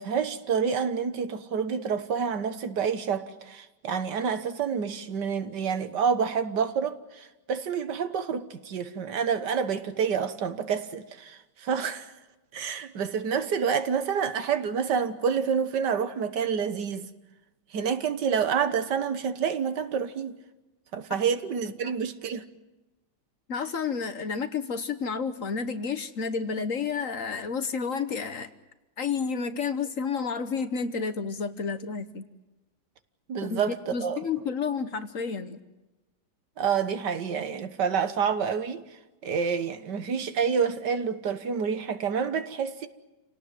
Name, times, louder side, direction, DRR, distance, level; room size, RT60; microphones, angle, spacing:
voice 1, 0.0-12.1 12.5-17.1 17.7-20.4 20.9-22.4 33.3-34.2 36.6-38.8 39.2-42.9, right 6 dB, 70° right, 1.8 m, -28 dB
voice 2, 23.5-28.5 29.0-32.3 33.4-33.6 33.9-35.6, left 5 dB, 50° left, 1.3 m, -30 dB
28.0 x 18.0 x 9.3 m
omnidirectional pair, 1.9 m